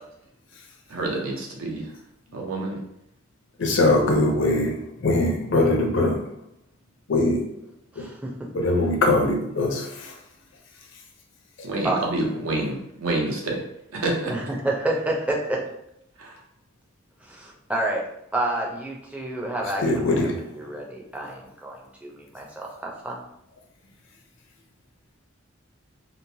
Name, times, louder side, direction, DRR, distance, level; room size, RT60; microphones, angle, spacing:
voice 1, 0.9-1.9 2.3-2.8 11.6-13.6 13.9-14.5 16.2-16.4, right 2 dB, 90° right, 0 dB, 0.7 m, -28 dB
voice 2, 3.6-4.7 5.0-6.2 7.1-7.5 8.0-8.1 8.5-10.1 19.8-20.3, left 2 dB, 60° left, 1 dB, 0.5 m, -21 dB
voice 3, 7.9-8.5 11.8-12.0 14.3-15.6 17.2-18.0 18.3-23.2, right 1 dB, 5° right, -2 dB, 0.4 m, -29 dB
2.9 x 2.0 x 2.6 m, 0.79 s
head